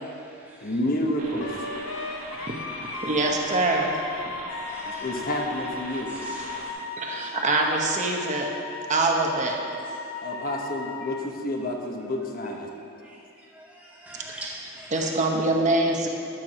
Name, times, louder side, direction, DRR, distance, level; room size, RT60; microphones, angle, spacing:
voice 1, 0.6-1.5 5.0-6.1 10.2-12.7, left 1 dB, 45° left, 1 dB, 1.1 m, -29 dB
sound 1, 1.2-6.7, right 2 dB, 90° right, 1.7 m, -41 dB
Wind instrument woodwind instrument, 1.4-11.3, left 3 dB, 65° left, 0.7 m, -36 dB
voice 2, 2.0-2.3 4.7-5.5 6.1-6.4 7.2-7.3 13.0-13.2 13.6-15.2, right 1 dB, 5° right, 0 dB, 0.4 m, -43 dB
voice 3, 3.0-3.9 4.3-4.4 6.4-6.6 7.0-8.5 8.9-9.6 14.3-14.4 14.9-16.1, right 2 dB, 35° right, 1 dB, 1.0 m, -24 dB
12.5 x 4.8 x 6.1 m, 2.6 s
head